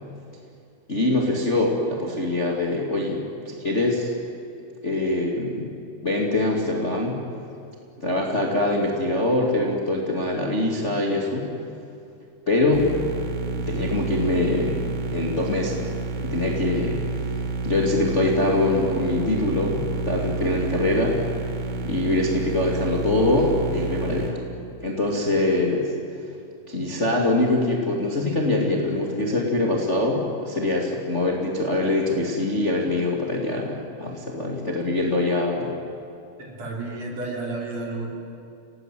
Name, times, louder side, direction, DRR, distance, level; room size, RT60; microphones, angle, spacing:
voice 1, 0.9-4.1 4.8-5.8 6.0-7.2 8.0-11.5 12.5-12.8 13.7-14.8 15.1-15.9 16.2-17.0 17.6-21.2 21.8-24.4 24.8-25.9 26.7-35.7, left 2 dB, 20° left, -1 dB, 2.3 m, -23 dB
sound 1, 12.7-24.3, right 3 dB, 85° right, 4.6 m, -29 dB
voice 2, 36.4-38.1, right 2 dB, 45° right, 0 dB, 4.4 m, -31 dB
28.0 x 19.0 x 9.3 m, 2.5 s
omnidirectional pair, 4.4 m